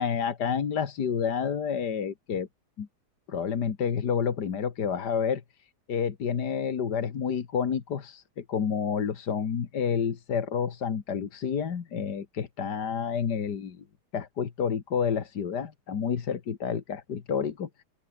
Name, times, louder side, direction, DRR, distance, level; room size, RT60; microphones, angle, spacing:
voice 1, 0.0-2.5 2.8-2.9 3.3-5.4 5.9-13.8 14.1-17.7, left 7 dB, 80° left, 2.3 m, -29 dB
open air
omnidirectional pair, 1.8 m